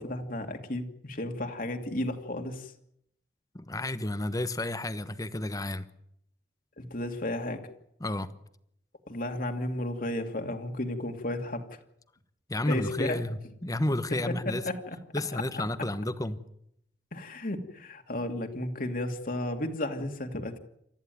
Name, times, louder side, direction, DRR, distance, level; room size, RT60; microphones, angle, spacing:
voice 1, 0.0-2.7 6.8-7.7 9.1-11.8 12.6-13.3 14.3-15.0 15.3-15.4 17.1-20.6, left 1 dB, 50° left, 2.7 m, -33 dB
voice 2, 3.5-5.9 8.0-8.3 12.5-14.6 15.1-16.4, left 1 dB, 20° left, 1.2 m, -31 dB
28.5 x 14.0 x 9.4 m
head